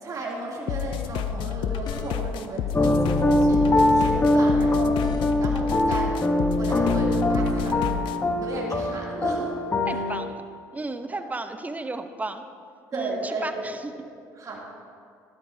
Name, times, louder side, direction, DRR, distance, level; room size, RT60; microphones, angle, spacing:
voice 1, 0.0-5.0 5.4-9.5 9.9-10.0 11.1-11.2 12.9-13.7 14.0-14.6, right 2 dB, 40° right, -4 dB, 2.7 m, -34 dB
sound 1, 0.7-8.2, left 9 dB, 65° left, 0.5 m, -30 dB
sound 2, 1.7-2.5 4.5-5.7, left 4 dB, 50° left, 1.2 m, -42 dB
sound 3, 2.7-10.2, left 1 dB, 20° left, 1.0 m, -22 dB
voice 2, 9.9-10.4 10.7-12.4 12.9-13.9, right 2 dB, 15° right, 9 dB, 0.8 m, -34 dB
14.0 x 12.5 x 2.8 m, 2.3 s
hypercardioid pair, 70°, 9 cm